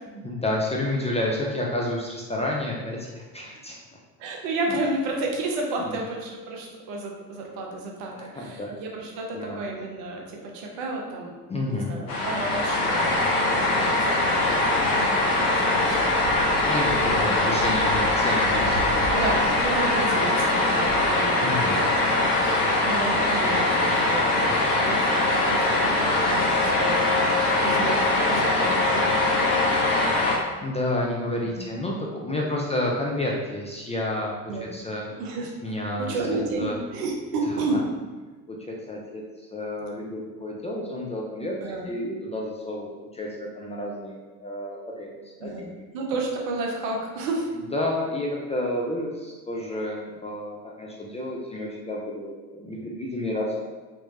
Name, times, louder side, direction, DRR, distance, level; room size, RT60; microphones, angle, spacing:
voice 1, 0.1-3.8 4.7-4.8 5.8-6.0 8.1-8.7 9.3-9.6 11.5-12.0 16.6-19.0 21.4-21.8 30.3-34.3 34.6-35.1 35.6-36.2 36.6-36.8 37.7-37.8 38.5-41.6 41.8-45.8 47.5-53.7, left 1 dB, 15° left, -3 dB, 0.4 m, -30 dB
voice 2, 4.2-11.4 11.7-16.7 17.0-17.5 19.1-24.5 24.8-27.0 27.6-29.7 29.9-30.2 31.4-31.6 34.5-34.7 35.2-35.5 36.0-37.8 41.6-41.8 45.4-45.7 45.9-47.5, right 2 dB, 65° right, 0 dB, 0.9 m, -32 dB
sound 1, 12.1-30.4, left 2 dB, 50° left, 1.0 m, -22 dB
3.3 x 3.0 x 2.7 m, 1.3 s
hypercardioid pair, 60°, 47 cm